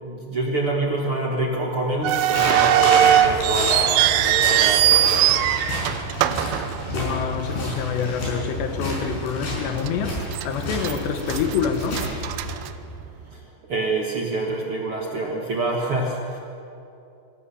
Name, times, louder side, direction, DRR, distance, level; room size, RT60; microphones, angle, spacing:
voice 1, 0.0-4.8 13.3-13.4 13.7-16.4, right 2 dB, 55° right, 1.5 m, -26 dB
sound 1, 2.0-7.4 7.6-7.7 8.5-8.7 9.2-9.3 9.9-10.5 10.8-13.3, right 13 dB, 80° right, 2.3 m, -20 dB
sound 2, 2.3-12.6, left 1 dB, 70° left, 7.7 m, -29 dB
voice 2, 6.9-12.1, left 7 dB, 90° left, 3.5 m, -27 dB
25.5 x 15.5 x 7.1 m
omnidirectional pair, 4.8 m